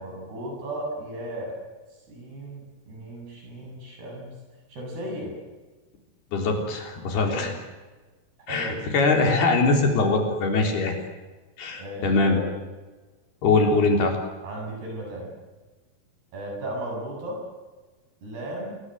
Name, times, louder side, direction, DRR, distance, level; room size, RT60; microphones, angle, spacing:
voice 1, 0.0-1.5 2.1-4.4 4.7-5.3 7.2-7.6 8.5-8.9 11.7-12.6 14.4-15.3 16.3-17.4 18.2-18.8, right 1 dB, 65° right, 0 dB, 10.0 m, -35 dB
voice 2, 6.3-7.5 8.5-10.9 11.6-12.4 13.4-14.2, left 3 dB, 65° left, 3 dB, 5.6 m, -22 dB
28.0 x 22.5 x 8.2 m, 1.3 s
omnidirectional pair, 5.0 m